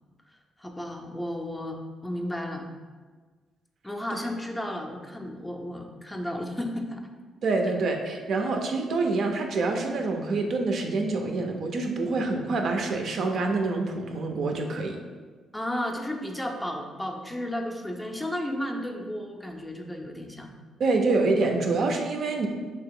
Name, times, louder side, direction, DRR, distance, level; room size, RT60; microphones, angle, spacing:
voice 1, 0.6-2.7 3.8-7.1 8.4-8.5 15.5-20.5, left 1 dB, 10° left, 2 dB, 0.4 m, -33 dB
voice 2, 7.4-15.0 20.8-22.5, right 3 dB, 60° right, 3 dB, 0.4 m, -26 dB
2.9 x 2.8 x 3.6 m, 1.5 s
cardioid pair, 90°, 0 cm